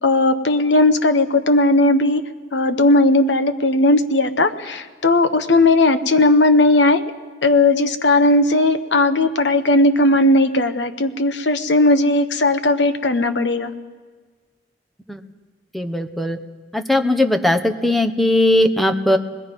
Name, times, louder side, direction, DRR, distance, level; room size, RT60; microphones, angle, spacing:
voice 1, 0.0-2.2 2.5-7.1 7.4-13.7, left 2 dB, 85° left, 9 dB, 1.3 m, -16 dB
voice 2, 15.7-16.4 16.7-19.2, left 1 dB, ahead, 6 dB, 1.1 m, -18 dB
27.5 x 20.5 x 5.4 m, 1.5 s
head